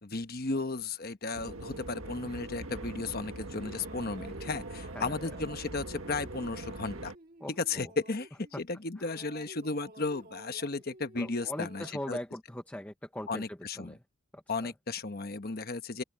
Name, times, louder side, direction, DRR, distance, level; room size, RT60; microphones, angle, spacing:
voice 1, 0.0-7.1 7.6-12.2 13.3-13.9 14.5-16.0, left 3 dB, 40° left, 1.1 m, -35 dB
sound 1, 1.3-7.2, right 2 dB, 65° right, 1.7 m, -42 dB
sound 2, 3.5-8.7 9.0-11.9, right 1 dB, 40° right, 1.7 m, -52 dB
voice 2, 7.4-7.9 9.0-9.2 11.2-14.0 14.3-14.7, left 1 dB, 5° left, 0.9 m, -41 dB
open air
head